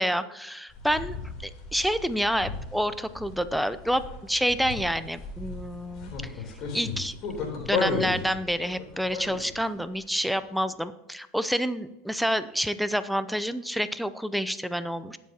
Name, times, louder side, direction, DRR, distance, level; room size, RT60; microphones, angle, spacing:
voice 1, 0.0-6.3 6.7-7.2 7.6-15.2, equal, ahead, 13 dB, 0.6 m, -28 dB
sound 1, 0.7-9.7, left 4 dB, 50° left, 3.4 m, -35 dB
20.0 x 7.3 x 2.9 m, 0.99 s
hypercardioid pair, 85°, 0 cm